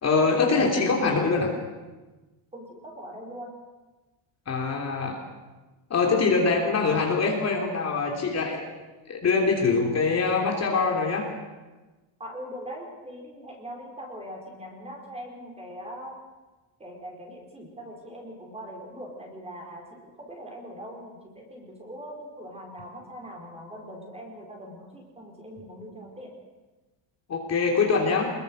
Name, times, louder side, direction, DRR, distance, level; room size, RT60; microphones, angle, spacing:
voice 1, 0.0-1.5 4.5-5.2 5.9-8.6 9.1-11.2 27.3-28.3, left 4 dB, 35° left, 0 dB, 3.3 m, -23 dB
voice 2, 2.5-3.5 12.2-16.2 16.8-26.3, equal, 15° right, 0 dB, 5.1 m, -41 dB
25.0 x 21.5 x 6.5 m, 1.2 s
cardioid pair, 160°, 47 cm